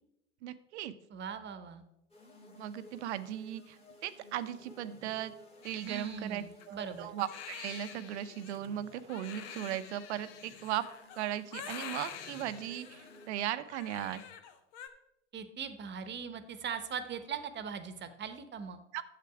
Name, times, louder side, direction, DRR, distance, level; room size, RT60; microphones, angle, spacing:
voice 1, 0.4-0.9 2.5-5.3 5.6-10.8 11.2-14.2 18.9-19.0, right 12 dB, 70° right, 13 dB, 0.8 m, -37 dB
voice 2, 1.1-1.8 5.8-7.1 15.3-18.8, right 7 dB, 30° right, 10 dB, 1.1 m, -40 dB
sound 1, 2.1-13.7, left 1 dB, 15° left, 2.2 m, -56 dB
Crying sobbing, 5.6-14.9, left 8 dB, 55° left, 1.2 m, -47 dB
9.4 x 7.5 x 4.8 m, 0.85 s
hypercardioid pair, 85°, 35 cm